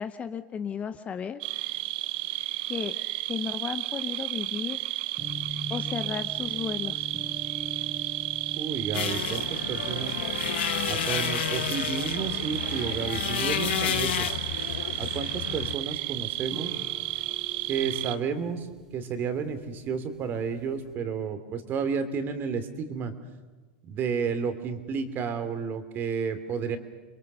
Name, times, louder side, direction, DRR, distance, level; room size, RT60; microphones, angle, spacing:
voice 1, 0.0-1.4 2.7-2.9 3.3-4.8 5.7-7.1, left 7 dB, 20° left, 11 dB, 0.8 m, -34 dB
sound 1, 1.4-18.2, right 18 dB, 60° right, 0.9 m, -32 dB
sound 2, 5.2-20.9, equal, 10° right, 1.8 m, -44 dB
voice 2, 8.6-10.2 10.9-14.3 15.0-16.8 17.7-23.1 23.9-26.8, right 6 dB, 35° right, 10 dB, 2.9 m, -31 dB
sound 3, 8.9-15.7, left 12 dB, 75° left, 1.3 m, -31 dB
28.5 x 22.5 x 6.8 m, 1.3 s
supercardioid pair, 130°, 6 cm